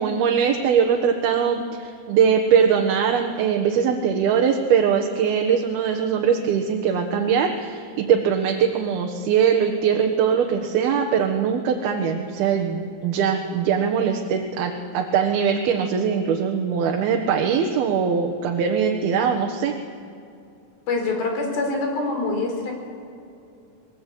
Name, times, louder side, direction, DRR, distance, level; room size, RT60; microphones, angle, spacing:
voice 1, 0.0-19.7, right 7 dB, 85° right, 2 dB, 3.3 m, -21 dB
voice 2, 20.9-22.7, left 3 dB, 80° left, 2 dB, 6.4 m, -25 dB
29.5 x 21.0 x 8.5 m, 2.6 s
omnidirectional pair, 4.3 m